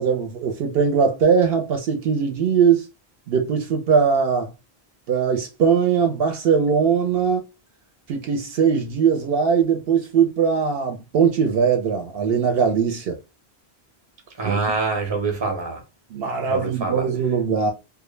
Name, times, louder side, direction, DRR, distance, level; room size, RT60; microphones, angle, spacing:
voice 1, 0.0-2.8 3.3-4.5 5.1-7.4 8.1-13.2 14.4-14.6 16.1-17.7, right 6 dB, 70° right, 0.7 m, -20 dB
voice 2, 14.4-15.8 16.5-17.1, right 4 dB, 30° right, 0.6 m, -25 dB
2.1 x 2.0 x 3.0 m
omnidirectional pair, 1.1 m